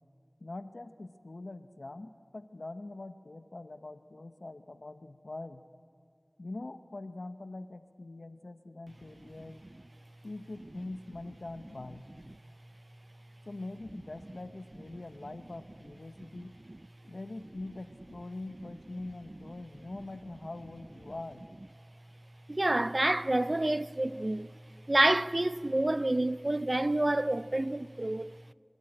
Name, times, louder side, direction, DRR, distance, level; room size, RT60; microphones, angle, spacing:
voice 1, 0.4-5.6 6.4-9.6 10.2-12.0 13.5-16.5 17.1-21.4, left 2 dB, 90° left, 0.9 m, -43 dB
voice 2, 16.3-16.8 22.5-24.5 24.9-28.4, right 1 dB, 45° right, 0.5 m, -28 dB
26.0 x 13.0 x 10.0 m
wide cardioid pair, 45°, 0 cm